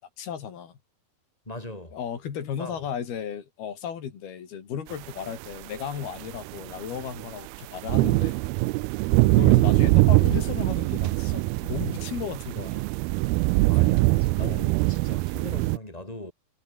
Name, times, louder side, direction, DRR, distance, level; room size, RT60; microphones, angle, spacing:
voice 1, 0.2-0.8 1.9-8.4 9.3-12.8 14.4-14.6, left 8 dB, 90° left, 5.1 m, -35 dB
voice 2, 1.5-2.0 2.6-2.8 9.1-9.9 13.7-16.3, left 1 dB, 10° left, 7.8 m, -40 dB
sound 1, 5.4-5.5 6.0-15.8, right 23 dB, 90° right, 2.5 m, -22 dB
omnidirectional pair, 4.3 m